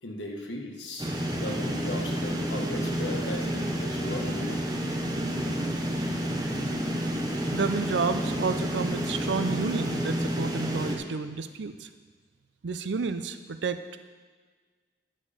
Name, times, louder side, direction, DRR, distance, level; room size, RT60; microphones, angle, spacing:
voice 1, 0.0-4.6, left 1 dB, 85° left, 1 dB, 1.3 m, -37 dB
sound 1, 1.0-11.0, equal, 20° right, 0.8 m, -30 dB
voice 2, 7.5-11.7 12.6-13.8, right 4 dB, 80° right, 10 dB, 0.5 m, -30 dB
9.2 x 6.5 x 5.0 m, 1.5 s
head